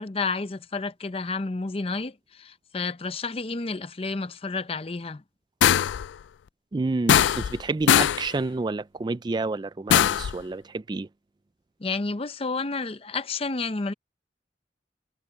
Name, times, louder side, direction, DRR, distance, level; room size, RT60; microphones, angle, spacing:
voice 1, 0.0-5.2 11.8-13.9, left 3 dB, 35° left, 0.6 m, -30 dB
sound 1, 5.6-6.1 7.1-7.6 7.9-8.3 9.9-10.3, left 10 dB, 85° left, 0.3 m, -20 dB
voice 2, 6.7-11.1, right 3 dB, 25° right, 0.3 m, -29 dB
head